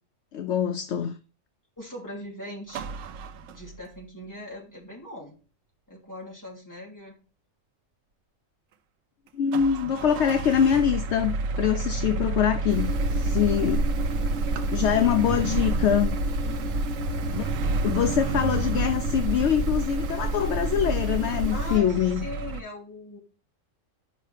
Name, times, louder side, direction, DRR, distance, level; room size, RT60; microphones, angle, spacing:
voice 1, 0.3-1.2 9.3-13.8 14.7-16.2 17.3-17.5 17.8-22.2, left 9 dB, 70° left, 0.8 m, -24 dB
voice 2, 1.8-3.0 3.5-5.4 5.9-7.1 11.8-11.9 13.1-13.2 16.4-16.9 21.5-23.2, left 1 dB, 15° left, 2.7 m, -40 dB
sound 1, 2.7-4.0 9.5-22.6, right 4 dB, 90° right, 1.0 m, -31 dB
sound 2, 12.7-21.8, right 1 dB, 65° right, 1.1 m, -29 dB
8.7 x 5.6 x 3.3 m
omnidirectional pair, 1.3 m